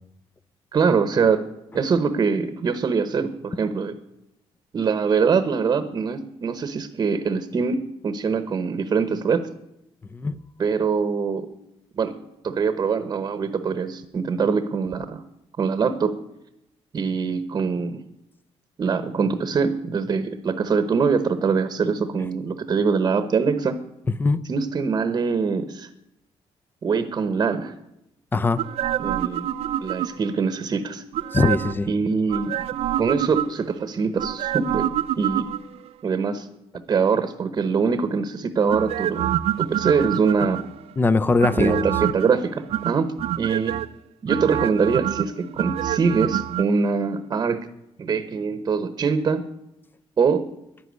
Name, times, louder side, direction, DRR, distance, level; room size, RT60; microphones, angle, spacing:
voice 1, 0.7-1.4 1.7-4.0 4.7-9.5 10.6-11.5 11.9-12.2 12.4-15.2 15.6-16.1 16.9-18.0 18.8-23.8 24.5-25.9 26.8-27.7 29.0-29.5 29.8-31.0 31.9-32.6 33.0-34.9 35.2-35.5 36.0-36.5 36.9-40.6 41.6-43.8 44.2-47.7 48.0-49.5 50.2-50.5, right 5 dB, 35° right, 1.0 m, -23 dB
voice 2, 28.3-28.6 31.3-31.9 41.0-41.9, left 3 dB, 20° left, 0.5 m, -21 dB
sound 1, 28.6-30.4 31.1-31.9 32.3-33.7 34.2-35.9 38.7-40.8 41.4-42.3 42.7-43.9 44.3-46.7 46.9-47.0, right 12 dB, 65° right, 0.5 m, -26 dB
11.5 x 11.0 x 9.5 m
cardioid pair, 160°, 11 cm